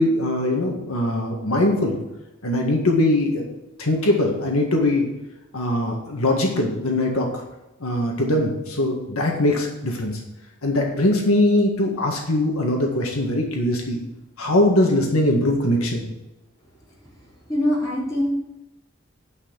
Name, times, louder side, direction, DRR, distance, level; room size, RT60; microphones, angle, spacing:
voice 1, 0.0-2.0 2.4-3.4 3.8-5.0 5.5-7.4 7.8-10.2 10.6-14.0 14.4-16.0, left 1 dB, 85° left, 1 dB, 1.8 m, -21 dB
voice 2, 17.5-18.3, left 1 dB, 15° left, -7 dB, 4.2 m, -22 dB
9.8 x 5.8 x 6.5 m, 0.96 s
head